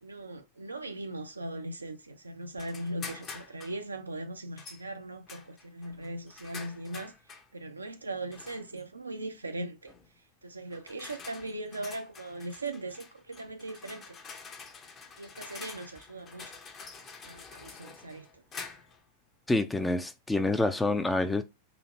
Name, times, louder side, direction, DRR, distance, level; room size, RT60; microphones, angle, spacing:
voice 1, 0.0-7.1 7.5-9.9 10.4-14.2 15.2-16.6 17.2-18.4, right 2 dB, 80° right, 0.6 m, -39 dB
sound 1, 2.6-3.8 4.6-4.8 5.3-7.5 8.3-8.8 9.9-10.1 10.7-19.0, left 5 dB, 30° left, 1.0 m, -47 dB
voice 2, 19.5-21.4, left 2 dB, 10° left, 0.6 m, -27 dB
4.0 x 2.9 x 4.4 m
figure-of-eight pair, 90°, 0 cm